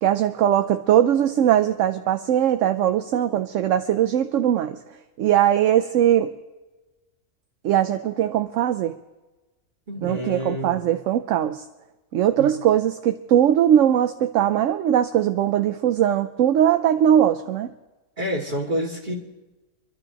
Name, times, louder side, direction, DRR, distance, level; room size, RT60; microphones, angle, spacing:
voice 1, 0.0-4.8 5.2-6.3 7.6-9.0 10.0-11.6 12.1-17.7, right 10 dB, 65° right, 9 dB, 0.9 m, -20 dB
voice 2, 9.9-10.8 12.4-12.5 18.2-19.1, equal, 30° right, -2 dB, 2.4 m, -28 dB
26.0 x 12.0 x 2.9 m, 1.1 s
omnidirectional pair, 1.6 m